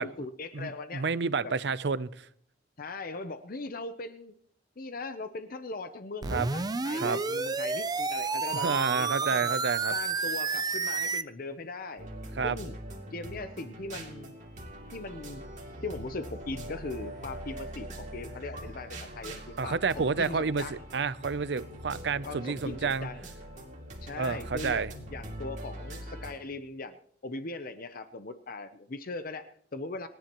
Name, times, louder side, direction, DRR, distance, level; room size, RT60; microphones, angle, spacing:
voice 1, 0.0-1.0 2.8-4.3 4.8-9.5 9.9-12.1 12.4-12.8 13.1-14.3 14.9-15.4 15.8-20.8 22.2-23.3 24.0-30.1, left 3 dB, 55° left, 11 dB, 0.7 m, -39 dB
voice 2, 0.5-2.3 6.3-6.5 7.0-7.2 8.6-9.9 12.4-12.6 19.6-23.1 24.2-24.9, right 5 dB, 70° right, 17 dB, 0.6 m, -30 dB
sound 1, 6.2-11.2, right 4 dB, 20° right, 0.5 m, -30 dB
sound 2, 12.0-26.3, right 1 dB, 45° right, 2.7 m, -43 dB
28.5 x 10.5 x 3.0 m, 0.64 s
head